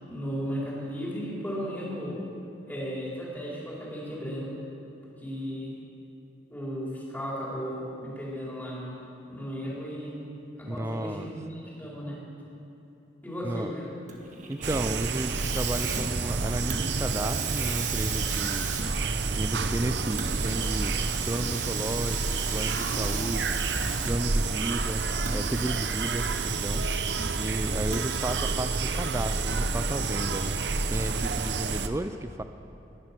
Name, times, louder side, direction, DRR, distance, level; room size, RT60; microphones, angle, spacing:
voice 1, 0.1-2.2 2.7-4.5 5.2-5.7 6.5-9.0 9.3-10.1 10.6-12.2 13.2-13.9, equal, 10° left, -6 dB, 4.5 m, -35 dB
voice 2, 10.7-11.3 13.4-13.7 14.5-18.7 19.3-21.0 21.3-23.6 24.1-25.0 25.3-26.8 27.4-30.6 30.9-32.4, right 1 dB, 15° right, 9 dB, 0.4 m, -33 dB
Hiss, 14.1-24.4 25.1-27.4 27.9-28.5, right 5 dB, 45° right, 1.5 m, -37 dB
sound 1, 14.6-31.9, right 4 dB, 70° right, 0.8 m, -29 dB
20.0 x 11.0 x 6.1 m, 3.0 s
head